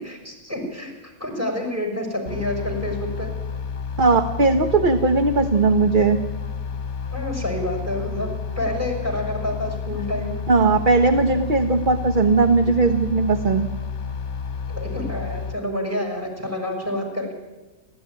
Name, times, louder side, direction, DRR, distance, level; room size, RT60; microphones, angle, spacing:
voice 1, 0.0-3.3 7.1-8.3 8.6-10.5 14.7-17.3, left 1 dB, 10° right, 3 dB, 5.9 m, -28 dB
sound 1, 2.3-15.6, left 6 dB, 50° left, 1.5 m, -31 dB
voice 2, 4.0-6.2 10.5-13.7, right 3 dB, 35° right, 7 dB, 1.2 m, -18 dB
30.0 x 13.5 x 9.8 m, 1.2 s
omnidirectional pair, 1.6 m